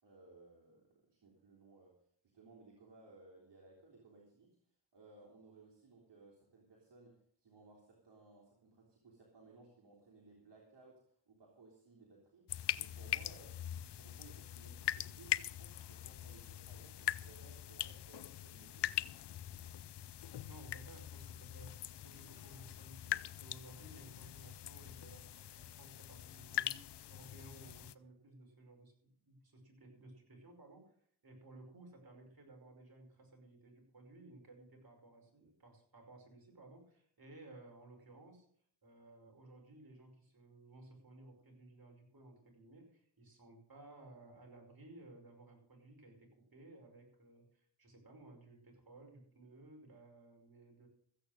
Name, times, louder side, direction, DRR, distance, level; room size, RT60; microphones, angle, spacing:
voice 1, 0.0-4.6 4.9-13.7 13.9-19.0, right 3 dB, 75° right, -2 dB, 3.2 m, -61 dB
sound 1, 12.5-27.9, left 12 dB, 75° left, 0.6 m, -42 dB
voice 2, 20.5-31.0 31.2-38.5 38.8-50.9, right 2 dB, 55° right, 2 dB, 5.4 m, -58 dB
15.0 x 8.6 x 6.5 m, 0.62 s
cardioid pair, 55°, 42 cm